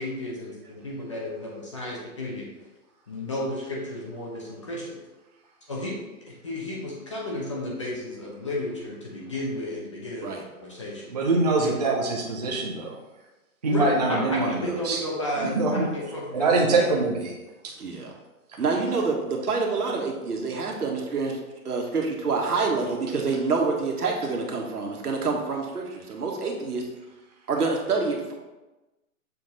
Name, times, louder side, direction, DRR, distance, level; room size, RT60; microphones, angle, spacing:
voice 1, 0.0-2.5 3.1-5.0 5.7-5.9 6.3-11.1 11.6-11.7 13.7-16.8, left 1 dB, 20° left, -3 dB, 0.7 m, -33 dB
voice 2, 11.1-13.0 13.6-15.0 15.4-15.9 16.3-17.4, right 3 dB, 30° right, -2 dB, 0.6 m, -24 dB
voice 3, 17.8-18.1 18.6-21.4 21.6-26.8 27.5-28.3, right 4 dB, 85° right, 1 dB, 1.7 m, -27 dB
6.9 x 4.0 x 4.1 m, 1.1 s
hypercardioid pair, 165°, 45 cm